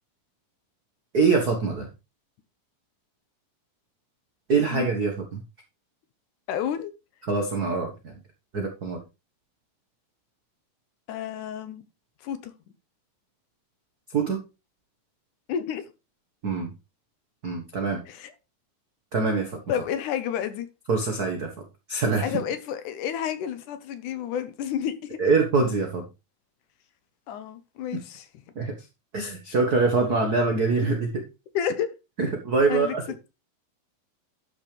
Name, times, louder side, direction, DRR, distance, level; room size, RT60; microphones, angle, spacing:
voice 1, 1.1-1.9 4.5-5.4 7.3-8.2 8.5-9.0 14.1-14.4 16.4-16.7 17.4-18.0 19.1-19.6 20.9-21.5 21.9-22.4 25.2-26.0 28.5-28.7 29.1-31.2 32.2-33.0, right 4 dB, 85° right, 3 dB, 0.8 m, -24 dB
voice 2, 6.5-6.9 11.1-11.8 12.2-12.5 15.5-15.9 18.1-18.3 19.7-20.7 22.2-25.2 27.3-28.3 30.8-30.9 31.5-31.9 32.7-33.0, left 9 dB, 70° left, 10 dB, 2.2 m, -30 dB
12.0 x 5.9 x 3.3 m, 0.26 s
omnidirectional pair, 4.0 m